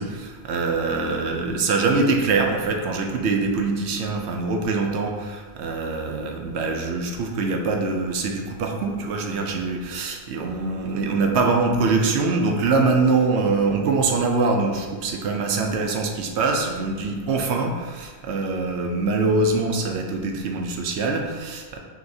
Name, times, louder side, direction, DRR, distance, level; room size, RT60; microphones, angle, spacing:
voice 1, 0.0-21.8, right 3 dB, 75° right, 2 dB, 0.9 m, -23 dB
6.0 x 2.8 x 2.7 m, 1.4 s
omnidirectional pair, 1.2 m